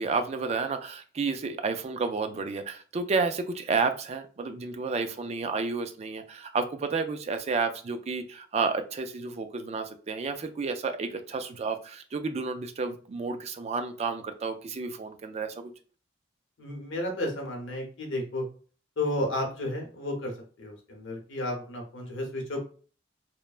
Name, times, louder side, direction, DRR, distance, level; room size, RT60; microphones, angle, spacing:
voice 1, 0.0-15.7, right 4 dB, 35° right, 8 dB, 0.3 m, -31 dB
voice 2, 16.6-18.4 19.0-20.3 20.6-22.6, left 1 dB, 70° left, 1 dB, 0.9 m, -32 dB
3.1 x 2.1 x 2.3 m, 0.40 s
head